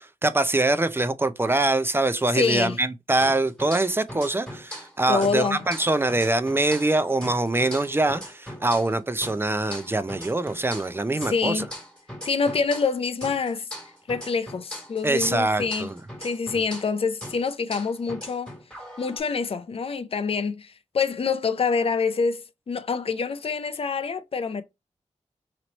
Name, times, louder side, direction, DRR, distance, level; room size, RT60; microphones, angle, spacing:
voice 1, 0.0-11.6 15.0-16.0, right 2 dB, 20° right, 0.5 m, -24 dB
voice 2, 2.3-2.8 5.1-5.7 11.3-11.7 12.2-13.7 14.1-15.9 16.2-18.5 19.0-24.6, left 5 dB, 50° left, 0.5 m, -26 dB
sound 1, 3.2-4.9 5.2-8.9 9.2-13.0 13.2-16.9 17.2-19.2, equal, 5° left, 1.6 m, -40 dB
3.0 x 3.0 x 3.9 m
cardioid pair, 60°, 12 cm